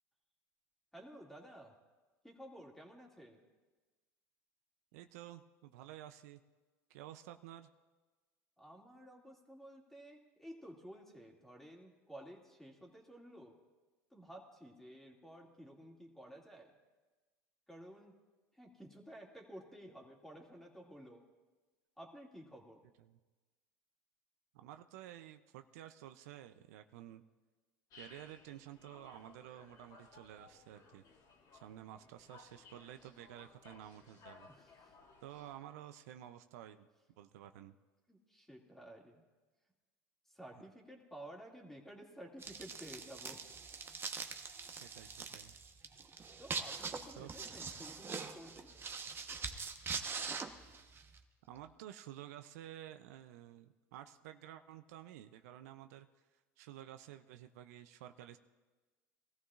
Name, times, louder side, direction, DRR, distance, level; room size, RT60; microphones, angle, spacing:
voice 1, 0.9-1.7 2.2-3.4 8.6-13.6 14.1-16.8 17.7-18.2 18.5-21.3 22.0-22.9 34.5-34.9 38.1-39.2 40.3-43.6 46.4-48.7, equal, 5° left, 0 dB, 2.4 m, -53 dB
voice 2, 4.9-6.4 6.9-7.7 23.0-23.2 24.5-27.2 28.0-31.0 31.5-34.5 35.2-36.9 37.2-37.8 44.7-45.5 47.2-47.3 51.5-56.1 56.6-58.4, right 12 dB, 80° right, 9 dB, 0.6 m, -52 dB
sound 1, 27.9-35.5, left 4 dB, 55° left, 2.3 m, -60 dB
sound 2, 42.4-51.2, right 5 dB, 25° right, 1.1 m, -43 dB
22.0 x 14.0 x 2.5 m, 1.3 s
supercardioid pair, 95°, 8 cm